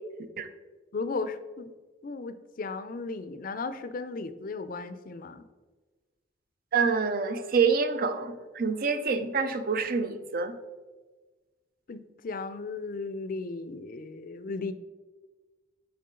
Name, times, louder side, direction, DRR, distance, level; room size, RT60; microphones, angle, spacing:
voice 1, 0.9-1.7 2.0-5.5 11.9-14.7, left 3 dB, 50° left, 11 dB, 0.5 m, -35 dB
voice 2, 6.7-10.5, right 5 dB, 50° right, 9 dB, 0.6 m, -27 dB
8.5 x 4.5 x 3.7 m, 1.3 s
head